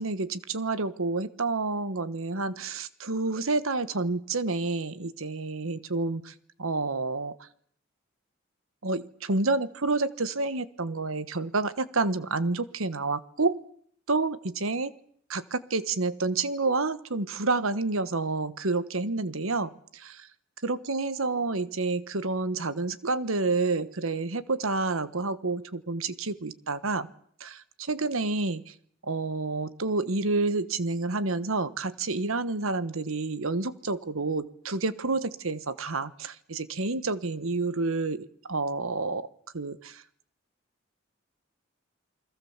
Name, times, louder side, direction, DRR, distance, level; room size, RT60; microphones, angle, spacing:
voice 1, 0.0-6.3 6.6-7.4 8.8-13.6 14.1-14.9 15.3-20.3 20.6-27.1 27.4-28.7 29.0-39.3 39.5-40.0, right 3 dB, 90° right, 14 dB, 1.3 m, -29 dB
28.5 x 21.5 x 7.3 m, 0.64 s
head